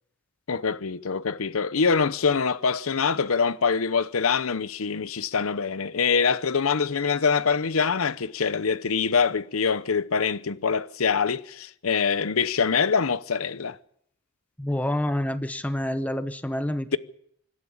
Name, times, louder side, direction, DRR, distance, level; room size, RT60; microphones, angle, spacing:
voice 1, 0.5-13.8, left 5 dB, 80° left, 0.8 m, -24 dB
voice 2, 14.6-17.0, left 1 dB, 5° left, 0.8 m, -28 dB
25.0 x 12.5 x 8.7 m
head